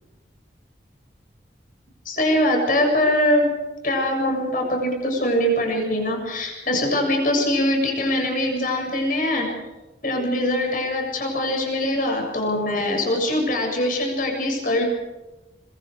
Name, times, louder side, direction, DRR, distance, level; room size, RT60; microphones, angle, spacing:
voice 1, 2.1-3.5 3.8-9.5 10.0-14.8, left 1 dB, 45° left, 1 dB, 7.4 m, -22 dB
25.5 x 24.5 x 5.1 m, 1.1 s
head